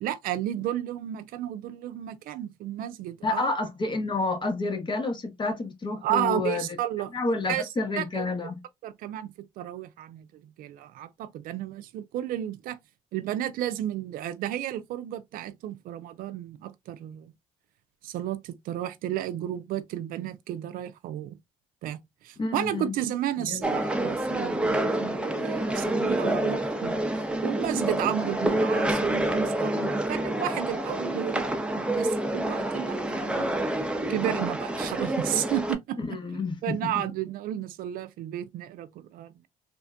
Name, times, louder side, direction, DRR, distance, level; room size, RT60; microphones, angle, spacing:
voice 1, 0.0-3.5 6.0-7.7 8.0-8.3 8.8-10.3 10.6-12.8 13.1-17.3 18.0-21.4 21.8-22.0 22.2-27.0 27.4-33.5 34.1-36.0 36.6-39.5, right 12 dB, 75° right, 0.4 m, -32 dB
voice 2, 3.2-6.6 7.1-8.6 22.4-22.9 23.4-23.7 36.0-36.9, left 3 dB, 30° left, 1.0 m, -29 dB
sound 1, 23.6-35.7, right 1 dB, 5° right, 0.6 m, -28 dB
3.4 x 2.1 x 2.4 m
cardioid pair, 85°, 15 cm